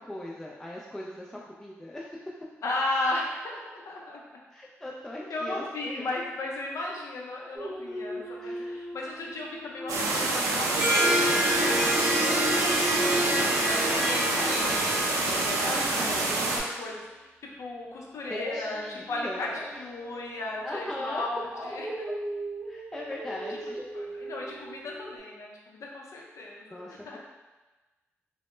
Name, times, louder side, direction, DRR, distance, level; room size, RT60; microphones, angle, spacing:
voice 1, 0.0-2.4 4.5-6.1 8.3-8.8 15.6-16.4 18.3-19.7 20.6-21.3 22.7-23.9 26.7-27.2, left 1 dB, 10° left, -4 dB, 0.3 m, -39 dB
voice 2, 2.6-4.2 5.3-15.9 16.2-19.5 19.8-21.9 23.9-27.2, left 2 dB, 65° left, -2 dB, 0.5 m, -36 dB
Dog, 7.6-11.7 12.1-17.1 18.2-25.2, right 1 dB, 35° right, 0.8 m, -40 dB
sound 1, 9.9-16.6, right 2 dB, 85° right, 0.3 m, -27 dB
Harp, 10.6-16.4, equal, 70° right, 0.8 m, -28 dB
2.1 x 2.0 x 3.0 m, 1.2 s
supercardioid pair, 50°, 5 cm